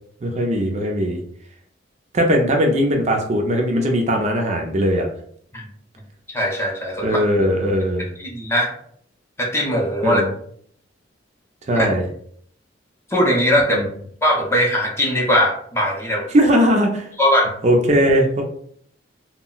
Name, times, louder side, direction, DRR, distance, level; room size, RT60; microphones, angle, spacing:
voice 1, 0.2-1.2 2.1-5.1 7.0-8.1 10.0-10.3 11.7-12.1 13.7-13.9 16.3-17.1 17.6-18.4, equal, 35° right, 2 dB, 0.4 m, -19 dB
voice 2, 6.3-7.2 8.2-8.7 9.4-10.2 11.7-11.9 13.1-13.8 14.2-16.3 17.2-17.5, equal, 15° left, -1 dB, 0.5 m, -20 dB
2.2 x 2.0 x 3.8 m, 0.62 s
head